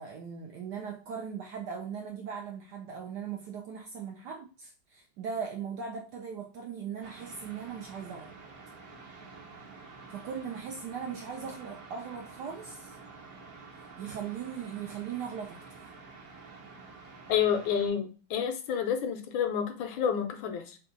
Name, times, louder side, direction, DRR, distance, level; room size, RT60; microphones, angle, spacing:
voice 1, 0.0-8.3 10.1-13.0 14.0-15.8, right 7 dB, 75° right, 1.0 m, -39 dB
sound 1, 7.0-17.9, right 4 dB, 55° right, 1.1 m, -49 dB
voice 2, 17.3-20.8, left 8 dB, 75° left, 1.3 m, -29 dB
3.5 x 2.3 x 3.8 m
omnidirectional pair, 2.2 m